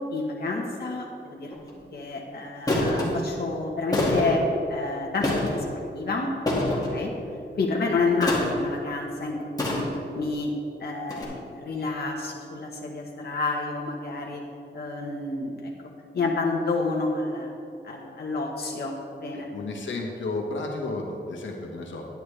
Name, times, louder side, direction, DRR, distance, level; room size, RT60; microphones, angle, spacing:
voice 1, 0.1-1.5 1.9-6.3 6.9-7.1 7.6-9.9 10.1-10.5 10.8-14.4 14.7-15.7 16.1-17.5 17.8-19.5, left 3 dB, 55° left, -2 dB, 1.1 m, -29 dB
sound 1, 1.5-1.7 2.7-3.1 3.9-4.3 5.2-5.6 6.5-6.9 8.2-8.6 9.6-10.1 11.1-11.2, left 1 dB, 20° left, 2.0 m, -25 dB
voice 2, 19.5-22.1, left 2 dB, 80° left, 0 dB, 1.3 m, -32 dB
10.5 x 10.0 x 3.3 m, 2.5 s
wide cardioid pair, 135°, 19 cm